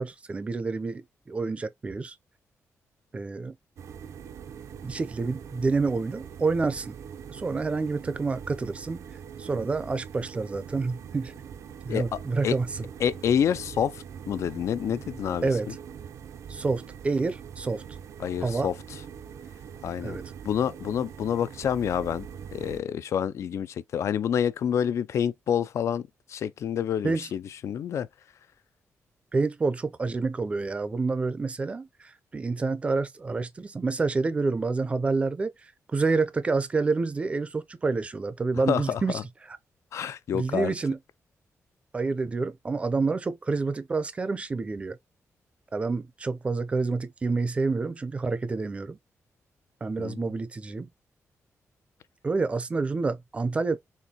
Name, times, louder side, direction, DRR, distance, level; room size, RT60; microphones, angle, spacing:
voice 1, 0.0-2.1 3.1-3.6 4.8-7.0 7.3-9.0 9.4-11.3 11.8-12.7 15.4-15.7 16.5-17.8 18.4-18.7 20.0-20.2 27.0-27.2 29.3-39.2 40.3-41.0 41.9-45.0 45.7-49.0 49.8-50.9 52.2-53.8, right 4 dB, 25° right, 0.5 m, -28 dB
sound 1, 3.8-22.8, right 8 dB, 70° right, 0.6 m, -43 dB
voice 2, 11.9-12.6 13.0-15.8 18.2-19.0 19.8-20.2 20.4-28.1 38.6-39.2 39.9-40.7 50.0-50.3, left 8 dB, 65° left, 0.4 m, -28 dB
4.3 x 3.5 x 2.9 m
wide cardioid pair, 165°, 5 cm